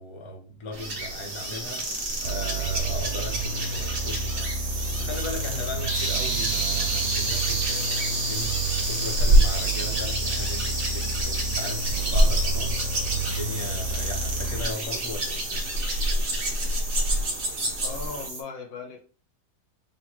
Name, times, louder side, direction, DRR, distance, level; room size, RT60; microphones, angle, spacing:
voice 1, 0.0-15.7, left 2 dB, 45° left, 0.3 m, -38 dB
sound 1, 0.7-18.3, right 1 dB, 50° right, 0.6 m, -28 dB
sound 2, 0.8-18.4, right 2 dB, 30° right, 1.3 m, -33 dB
sound 3, 2.2-14.6, right 3 dB, 75° right, 1.2 m, -31 dB
voice 2, 17.8-19.0, left 5 dB, 75° left, 1.7 m, -37 dB
3.7 x 2.5 x 4.5 m
omnidirectional pair, 2.1 m